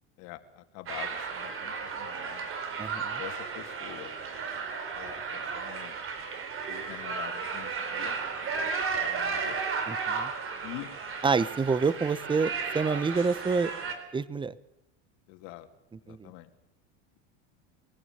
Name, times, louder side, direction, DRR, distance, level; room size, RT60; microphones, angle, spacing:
voice 1, 0.2-2.5 3.2-4.1 4.9-6.0 6.7-8.2 8.6-9.6 10.6-10.9 15.3-15.7 16.0-16.5, left 16 dB, 65° left, 7 dB, 2.6 m, -45 dB
sound 1, 0.9-13.9, right 5 dB, 35° right, 4.3 m, -34 dB
voice 2, 2.8-3.2 9.9-10.3 11.2-13.7 14.1-14.5 16.1-16.3, right 4 dB, 15° right, 18 dB, 1.0 m, -28 dB
23.0 x 16.0 x 9.2 m, 0.84 s
supercardioid pair, 115°, 35 cm